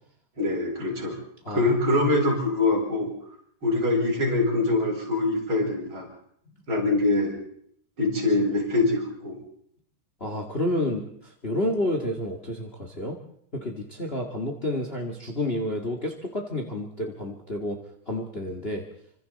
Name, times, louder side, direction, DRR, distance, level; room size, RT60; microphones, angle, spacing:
voice 1, 0.4-1.2 1.5-3.1 3.6-6.1 6.7-7.3 8.0-9.4, left 2 dB, 25° right, -3 dB, 8.6 m, -24 dB
voice 2, 1.4-2.0 10.2-13.2 13.5-17.8 18.1-18.8, left 1 dB, 80° left, 3 dB, 0.5 m, -30 dB
28.5 x 25.5 x 4.3 m, 0.65 s
omnidirectional pair, 5.1 m